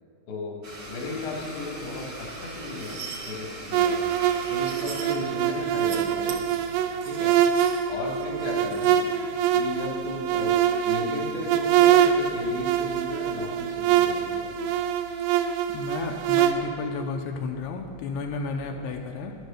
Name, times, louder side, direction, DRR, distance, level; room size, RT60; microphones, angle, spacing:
voice 1, 0.3-0.6 0.9-3.0 3.2-4.0 4.5-6.4 7.0-7.3 7.9-8.9 9.5-10.5 10.8-14.5 18.7-18.8, left 2 dB, 55° left, -1 dB, 1.5 m, -35 dB
Domestic sounds home sounds, 0.6-5.6, right 1 dB, 40° right, 1.5 m, -41 dB
sound 1, 2.3-3.3 4.1-5.2 5.6-6.0 6.3-8.9, right 6 dB, 65° right, 2.1 m, -42 dB
sound 2, 3.7-16.5, right 9 dB, 85° right, 2.8 m, -24 dB
voice 2, 15.7-19.4, left 4 dB, 80° left, 3 dB, 2.6 m, -32 dB
11.0 x 7.9 x 6.8 m, 2.5 s
omnidirectional pair, 5.0 m